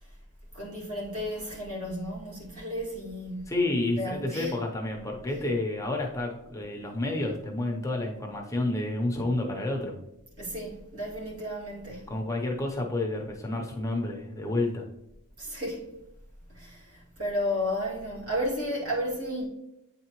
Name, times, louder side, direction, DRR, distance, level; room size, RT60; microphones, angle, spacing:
voice 1, 0.5-3.5 4.0-4.5 10.4-12.0 15.4-15.8 16.5-19.5, equal, 70° right, 2.1 m, -33 dB
voice 2, 3.5-10.0 12.1-14.8, left 2 dB, 15° left, 0.6 m, -30 dB
8.7 x 3.8 x 3.0 m
head